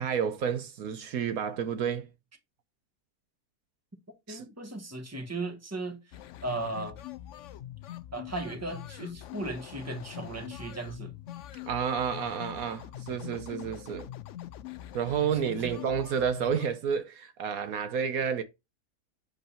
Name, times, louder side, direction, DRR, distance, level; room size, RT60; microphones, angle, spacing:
voice 1, 0.0-2.1 4.3-4.5 11.7-14.1 14.9-18.4, right 7 dB, 75° right, 1.2 m, -30 dB
voice 2, 4.3-6.0 6.4-7.0 8.1-11.1 15.6-15.7, right 2 dB, 10° right, 1.3 m, -36 dB
sound 1, 6.1-16.7, left 12 dB, 65° left, 0.8 m, -43 dB
8.0 x 3.8 x 4.2 m
omnidirectional pair, 1.6 m